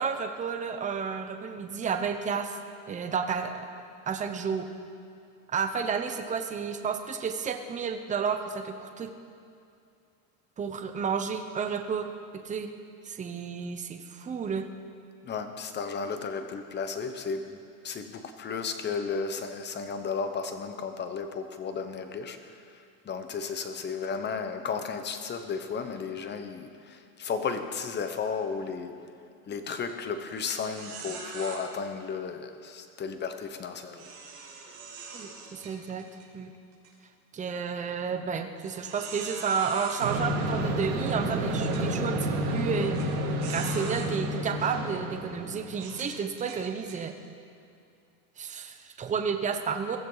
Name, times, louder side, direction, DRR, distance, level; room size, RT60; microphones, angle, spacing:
voice 1, 0.0-2.6 2.9-3.7 4.1-4.7 5.5-9.1 10.6-12.1 12.4-12.7 13.1-14.6 35.1-36.0 36.3-36.5 37.3-43.0 43.4-47.1 48.4-50.0, right 6 dB, 15° right, 5 dB, 0.9 m, -31 dB
voice 2, 15.2-22.4 23.0-29.1 29.5-34.1, left 5 dB, 25° left, 8 dB, 1.1 m, -34 dB
sound 1, 29.6-29.9 30.3-30.4 30.7-31.6 33.9-36.3 36.7-36.9 37.5-37.6 38.6-40.1 40.9-41.0 41.6-41.8 42.9-43.1 43.4-44.1 44.7-44.9 45.7-47.0, right 5 dB, 35° right, 5.2 m, -42 dB
sound 2, 40.0-45.8, right 1 dB, 80° right, 3.3 m, -30 dB
22.5 x 14.0 x 4.0 m, 2.5 s
supercardioid pair, 140°, 44 cm